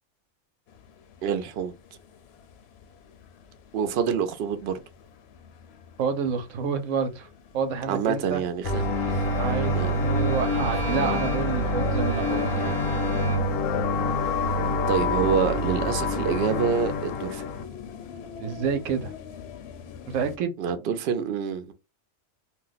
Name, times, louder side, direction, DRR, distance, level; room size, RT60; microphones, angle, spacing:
sound 1, 0.7-20.4, left 8 dB, 65° left, 0.7 m, -42 dB
voice 1, 1.2-1.7 3.7-4.8 7.9-9.2 9.7-10.1 14.9-17.4 20.6-21.7, right 7 dB, 65° right, 0.7 m, -27 dB
voice 2, 6.0-7.3 7.5-8.4 9.4-9.7 10.0-12.8 18.4-19.1 20.1-20.5, right 6 dB, 80° right, 1.0 m, -28 dB
sound 2, 8.6-17.6, left 1 dB, 85° left, 1.0 m, -26 dB
Bowed string instrument, 8.7-13.7, right 4 dB, 30° right, 0.7 m, -37 dB
2.5 x 2.2 x 3.9 m
omnidirectional pair, 1.3 m